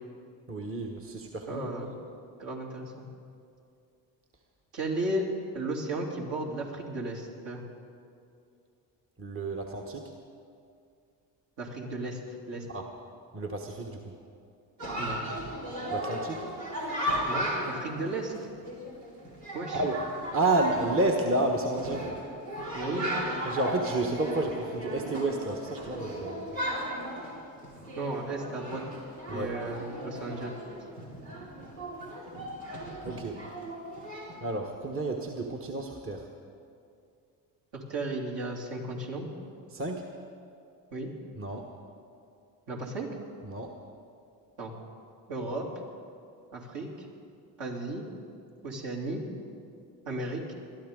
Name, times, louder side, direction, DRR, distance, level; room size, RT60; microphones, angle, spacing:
voice 1, 0.5-1.7 9.2-10.1 12.7-12.9 13.3-14.1 15.9-16.4 19.7-20.0 20.3-22.1 23.4-26.5 29.3-29.6 33.0-33.4 34.4-36.3 39.7-40.0 41.4-41.7 43.4-43.7, right 2 dB, 25° right, 1 dB, 1.3 m, -30 dB
voice 2, 1.5-2.0 2.4-3.1 4.7-5.3 5.5-7.6 11.6-12.2 12.5-12.6 15.0-15.3 17.3-18.3 19.5-19.8 22.7-23.1 28.0-28.8 29.3-30.5 37.7-39.3 40.9-41.1 42.7-43.1 44.6-44.7 45.3-45.7 46.5-46.9 47.6-48.0 48.6-49.2 50.0-50.5, right 2 dB, 60° right, -2 dB, 3.2 m, -34 dB
Chatter, 14.8-34.4, equal, 85° right, 3.3 m, -36 dB
21.0 x 12.5 x 3.8 m, 2.5 s
hypercardioid pair, 65°, 50 cm